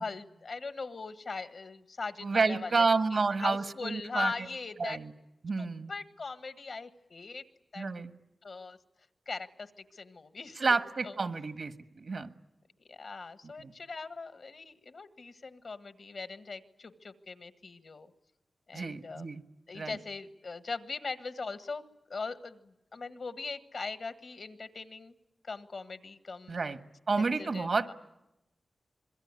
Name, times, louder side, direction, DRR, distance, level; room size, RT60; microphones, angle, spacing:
voice 1, 0.0-5.0 5.6-7.4 7.7-7.8 8.4-8.8 9.3-10.6 11.0-11.2 12.9-18.1 18.7-19.3 19.7-21.8 22.1-25.1 25.4-26.6 27.1-27.9, left 4 dB, 65° left, 10 dB, 1.5 m, -40 dB
voice 2, 2.2-4.3 4.8-5.1 5.4-5.9 7.8-8.1 10.6-12.3 13.4-13.7 18.7-19.4 19.7-20.0 26.5-26.8 27.1-27.9, right 4 dB, 65° right, 9 dB, 1.5 m, -30 dB
26.0 x 22.0 x 9.7 m, 0.91 s
cardioid pair, 70°, 0 cm